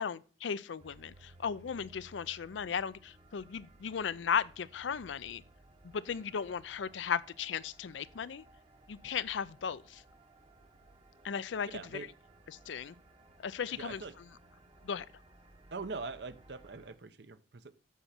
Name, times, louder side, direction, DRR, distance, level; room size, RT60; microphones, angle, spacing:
voice 1, 0.0-5.4 5.8-8.4 8.9-10.0 11.2-11.8 12.7-12.9 13.4-14.0 14.8-15.1, left 7 dB, 80° left, 0.5 m, -36 dB
sound 1, 0.8-17.0, right 2 dB, 30° right, 0.9 m, -60 dB
voice 2, 11.7-12.1 13.7-14.2 15.7-17.7, right 4 dB, 65° right, 0.7 m, -42 dB
8.2 x 5.9 x 4.3 m
head